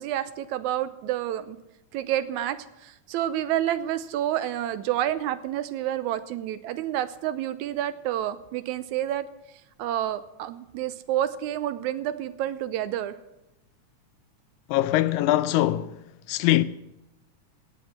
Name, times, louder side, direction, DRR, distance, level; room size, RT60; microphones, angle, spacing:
voice 1, 0.0-1.6 1.9-9.3 9.8-13.2, right 12 dB, 85° right, 2.1 m, -29 dB
voice 2, 14.7-16.0 16.3-16.6, left 15 dB, 90° left, 2.1 m, -22 dB
17.5 x 7.4 x 7.4 m
omnidirectional pair, 3.4 m